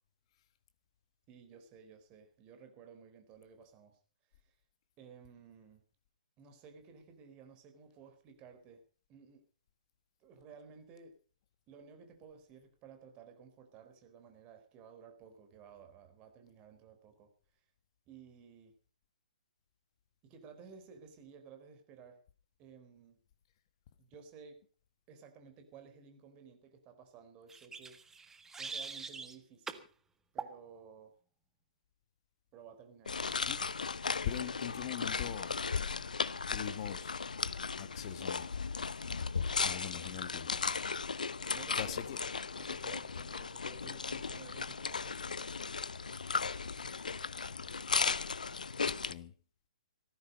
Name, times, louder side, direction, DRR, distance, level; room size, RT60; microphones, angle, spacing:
voice 1, 1.3-4.0 4.3-4.5 5.0-5.8 6.4-8.8 9.1-9.4 10.2-11.1 11.7-17.3 18.1-18.7 20.2-22.2 22.6-23.2 24.0-24.6 25.1-28.0 28.6-29.8 30.3-31.1 32.5-33.2 41.5-42.0 42.6-45.5, right 6 dB, 25° right, 6 dB, 4.3 m, -55 dB
sound 1, 27.5-29.4 29.7-29.9 30.4-30.6, right 5 dB, 10° right, 1.5 m, -43 dB
sound 2, 33.1-49.1, left 5 dB, 70° left, 0.8 m, -36 dB
voice 2, 34.2-35.5 36.5-37.2 37.8-38.5 39.6-40.6 41.7-42.2 48.8-49.3, left 10 dB, 40° left, 12 dB, 1.4 m, -41 dB
17.5 x 14.5 x 5.2 m, 0.40 s
figure-of-eight pair, 125°, 4 cm